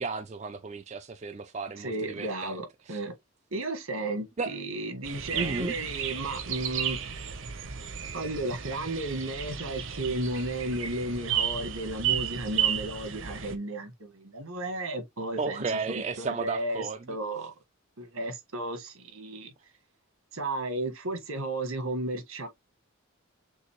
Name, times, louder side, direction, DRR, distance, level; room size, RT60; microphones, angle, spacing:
voice 1, 0.0-2.6 2.9-3.0 4.4-4.6 5.3-5.8 15.4-17.0, right 4 dB, 30° right, 0.4 m, -33 dB
voice 2, 1.8-3.1 3.5-7.4 8.1-17.5 18.0-19.5 20.3-22.5, right 2 dB, 80° right, 1.5 m, -34 dB
sound 1, 5.0-13.6, right 9 dB, 65° right, 0.9 m, -33 dB
6.4 x 2.7 x 3.0 m
head